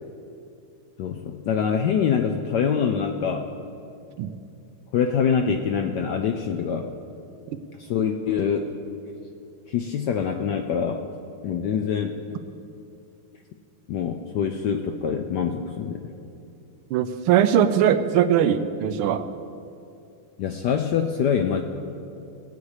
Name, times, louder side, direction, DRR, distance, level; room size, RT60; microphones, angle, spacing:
voice 1, 1.0-3.5 4.9-6.9 7.8-8.7 9.7-11.0 11.4-12.4 13.9-16.1 20.4-21.6, left 7 dB, 75° left, 5 dB, 1.0 m, -25 dB
voice 2, 16.9-19.2, right 9 dB, 80° right, 11 dB, 1.5 m, -20 dB
18.0 x 8.6 x 4.9 m, 2.6 s
omnidirectional pair, 2.4 m